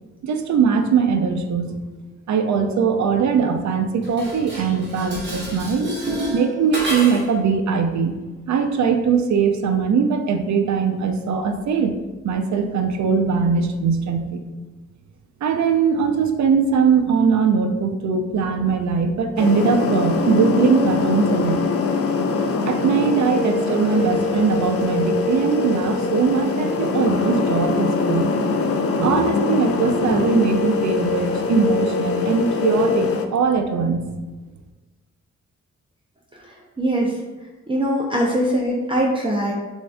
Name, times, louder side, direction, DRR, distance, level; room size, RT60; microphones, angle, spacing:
voice 1, 0.2-1.7 2.3-5.9 6.3-8.2 8.5-12.0 12.2-14.4 15.4-21.7 22.7-28.3 29.0-34.0, right 5 dB, 70° right, 6 dB, 0.5 m, -20 dB
Dishes pots and pans, 4.0-7.4, equal, 35° right, 1.5 m, -29 dB
sound 1, 19.4-33.3, left 4 dB, 50° left, 0.4 m, -23 dB
voice 2, 36.3-37.2 37.7-39.5, right 1 dB, 20° right, -3 dB, 0.5 m, -22 dB
6.8 x 2.7 x 2.2 m, 1.2 s
cardioid pair, 110°, 29 cm